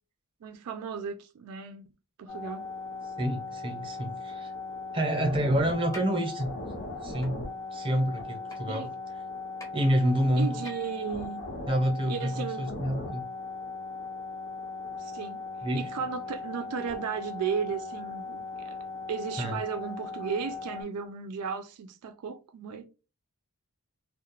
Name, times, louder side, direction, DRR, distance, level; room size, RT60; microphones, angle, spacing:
voice 1, 0.4-1.8 2.2-2.6 8.7-8.9 10.4-11.4 12.1-12.6 14.9-15.4 15.7-18.8 19.1-22.8, right 6 dB, 80° right, 0.4 m, -35 dB
sound 1, 2.3-20.8, left 3 dB, 60° left, 0.6 m, -38 dB
voice 2, 3.2-4.5 4.9-6.5 7.0-8.9 9.7-10.6 11.7-13.3 15.6-15.9 19.4-19.6, equal, 25° right, 0.7 m, -28 dB
sound 2, 5.9-6.0 7.2-7.3 8.5-8.6 9.6-9.7 10.6-11.0, left 1 dB, 15° left, 0.6 m, -44 dB
2.3 x 2.0 x 3.0 m
head